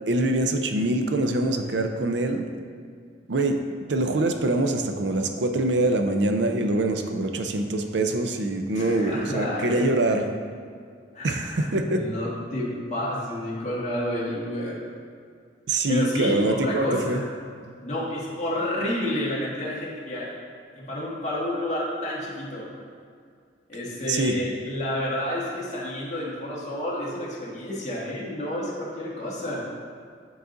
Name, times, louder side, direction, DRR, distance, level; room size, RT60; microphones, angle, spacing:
voice 1, 0.1-2.4 3.3-3.6 3.9-10.2 11.2-12.1 15.7-17.2 24.1-24.3, right 2 dB, 65° right, 6 dB, 0.5 m, -24 dB
voice 2, 8.7-10.2 11.1-14.8 15.9-17.3 17.8-20.3 20.8-22.7 23.7-29.7, left 1 dB, 40° left, -6 dB, 1.6 m, -30 dB
9.4 x 4.0 x 3.9 m, 2.2 s
head